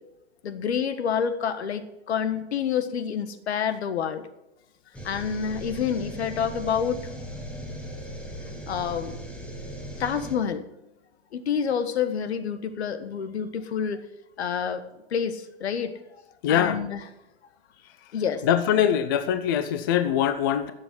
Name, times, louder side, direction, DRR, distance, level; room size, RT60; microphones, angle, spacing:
voice 1, 0.4-4.3 5.0-7.0 8.7-9.2 10.0-10.7 11.3-14.0 14.4-14.8 15.1-15.9 16.5-17.0 18.1-18.4, left 7 dB, 75° left, 11 dB, 1.4 m, -28 dB
sound 1, 4.9-10.4, equal, 5° left, 1.2 m, -38 dB
voice 2, 16.4-16.8 18.4-20.7, left 9 dB, 20° left, 11 dB, 0.4 m, -23 dB
12.0 x 7.3 x 7.5 m, 0.91 s
hypercardioid pair, 160°, 33 cm